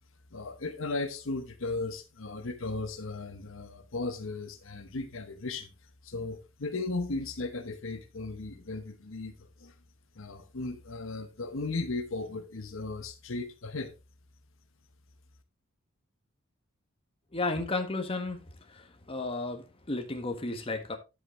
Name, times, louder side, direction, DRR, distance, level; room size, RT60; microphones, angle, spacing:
voice 1, 0.3-9.7 10.1-13.9, left 3 dB, 65° left, 1.0 m, -36 dB
voice 2, 17.3-18.4 19.1-21.0, left 2 dB, 30° left, 1.5 m, -32 dB
10.5 x 7.9 x 3.1 m
head